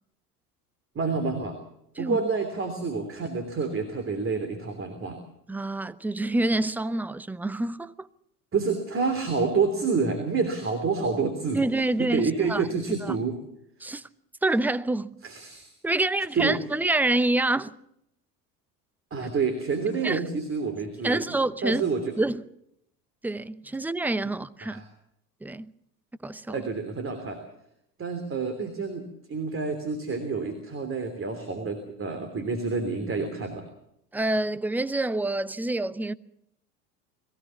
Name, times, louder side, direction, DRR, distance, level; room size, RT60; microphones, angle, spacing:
voice 1, 0.9-1.5 2.0-5.2 8.5-11.6 12.0-13.4 13.8-13.9 15.2-15.7 16.3-16.6 19.1-21.2 21.6-22.1 24.6-24.8 26.5-27.4 28.0-29.0 29.3-33.7, right 4 dB, 25° right, 3.2 m, -28 dB
voice 2, 5.5-8.1 11.5-12.6 13.0-13.1 13.8-14.1 14.4-15.1 15.8-17.7 20.0-20.2 21.0-21.8 22.2-22.4 23.2-24.8 25.4-25.7 26.2-26.6 34.1-36.1, right 2 dB, 5° right, 0.7 m, -27 dB
22.0 x 16.5 x 7.2 m
figure-of-eight pair, 75°, 47 cm